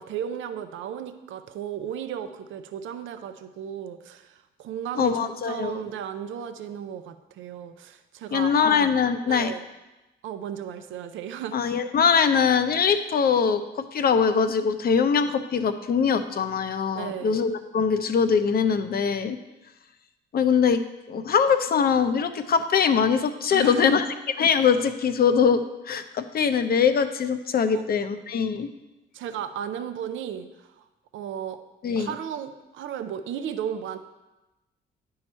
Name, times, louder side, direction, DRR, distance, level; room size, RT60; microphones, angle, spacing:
voice 1, 0.0-8.8 9.3-9.6 10.2-11.8 16.9-17.4 23.5-23.9 27.7-28.1 29.1-30.9 31.1-31.6 32.0-34.0, right 9 dB, 80° right, 9 dB, 0.6 m, -35 dB
voice 2, 5.0-5.8 8.3-9.5 11.5-19.4 20.3-24.0 24.4-28.7 31.8-32.1, left 6 dB, 50° left, 10 dB, 0.6 m, -22 dB
9.7 x 4.7 x 4.3 m, 1.0 s
cardioid pair, 90°, 20 cm